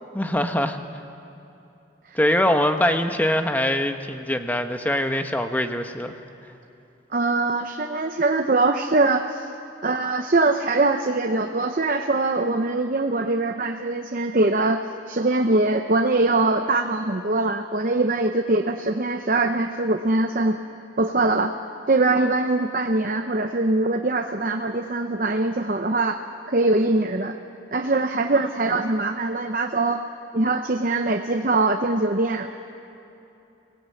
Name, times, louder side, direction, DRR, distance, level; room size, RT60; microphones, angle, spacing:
voice 1, 0.1-0.8 2.1-6.1, left 1 dB, 10° left, 6 dB, 1.0 m, -23 dB
voice 2, 7.1-9.5 9.8-14.8 15.1-20.6 21.0-21.5 21.9-26.2 26.5-27.3 27.7-30.0 30.3-32.5, right 2 dB, 45° right, 6 dB, 0.7 m, -22 dB
24.0 x 18.5 x 8.5 m, 2.9 s
head